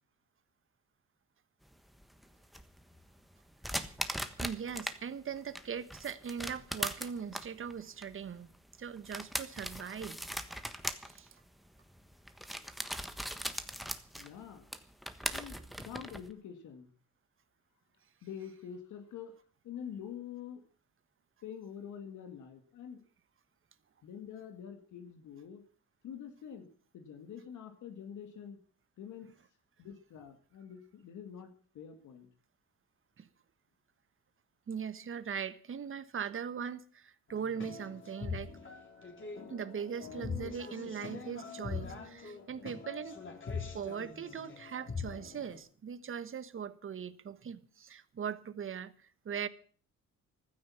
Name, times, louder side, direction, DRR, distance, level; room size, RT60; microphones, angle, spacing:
sound 1, 1.7-5.0 5.3-16.3, equal, ahead, 1.3 m, -40 dB
voice 1, 4.4-8.5 8.8-10.2 11.1-11.3 33.2-33.3 34.7-38.6 39.5-43.2 43.7-49.5, right 7 dB, 45° right, 1.3 m, -40 dB
voice 2, 14.2-14.7 15.3-16.9 18.2-19.4 19.6-20.6 21.4-23.0 24.0-25.6 26.0-26.7 26.9-28.6 29.0-29.3 29.8-32.3, left 8 dB, 75° left, 2.1 m, -46 dB
sound 2, 37.3-45.6, left 5 dB, 40° left, 3.7 m, -43 dB
15.0 x 12.5 x 5.8 m
cardioid pair, 90°, 30 cm